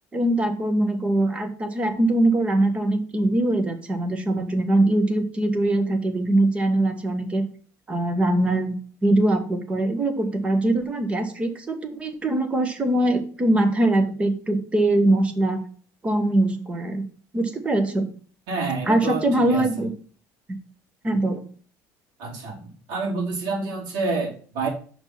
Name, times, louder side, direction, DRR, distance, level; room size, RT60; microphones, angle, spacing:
voice 1, 0.1-7.5 7.9-8.8 9.0-15.6 16.0-17.1 17.3-18.1 18.9-19.9 21.0-21.4, right 1 dB, 15° right, 7 dB, 1.2 m, -22 dB
voice 2, 18.5-19.6 22.2-22.6 22.9-24.7, right 3 dB, 85° right, -3 dB, 4.0 m, -28 dB
5.7 x 5.4 x 5.7 m, 0.43 s
cardioid pair, 170°, 7 cm